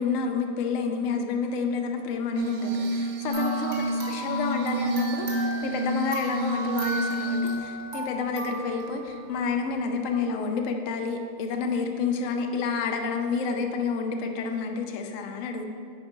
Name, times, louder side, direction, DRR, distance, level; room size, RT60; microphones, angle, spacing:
voice 1, 0.0-15.7, left 5 dB, 60° left, 4 dB, 1.0 m, -29 dB
Glass, 2.4-7.6, right 1 dB, 85° right, 1.2 m, -29 dB
sound 1, 3.3-9.8, equal, 30° right, 1.3 m, -36 dB
9.8 x 4.9 x 4.4 m, 2.3 s
omnidirectional pair, 1.7 m